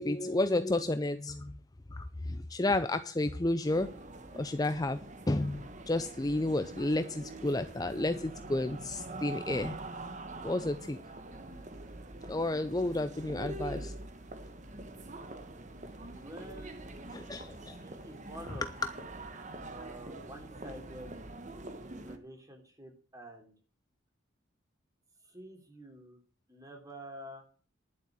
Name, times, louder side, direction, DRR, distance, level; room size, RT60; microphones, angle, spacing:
voice 1, 0.0-1.5 1.9-2.0 2.5-3.9 4.4-5.0 5.3-5.6 5.9-9.8 10.4-11.0 12.3-13.9 17.1-17.8, left 2 dB, 20° left, 10 dB, 0.5 m, -31 dB
sound 1, 3.6-22.2, right 2 dB, 35° right, 1.3 m, -44 dB
voice 2, 16.1-16.7 17.8-18.7 19.7-21.1 22.0-23.5 25.2-26.2 26.5-27.4, right 1 dB, 15° right, 3 dB, 3.1 m, -48 dB
11.0 x 7.7 x 7.4 m, 0.41 s
head